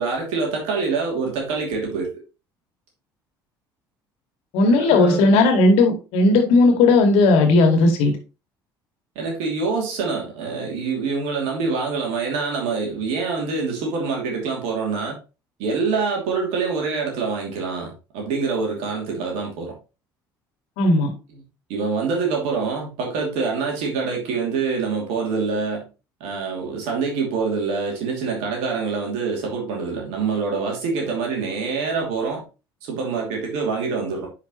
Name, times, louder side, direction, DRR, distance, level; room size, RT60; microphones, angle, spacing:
voice 1, 0.0-2.1 4.6-5.3 9.1-15.1 15.6-19.7 21.3-21.4 21.7-25.9 26.2-32.4 32.8-34.3, right 4 dB, 60° right, 2.8 m, -25 dB
voice 2, 4.5-8.1 20.8-21.1, left 2 dB, 60° left, 2.1 m, -16 dB
9.8 x 5.1 x 3.1 m
figure-of-eight pair, 60°, 12 cm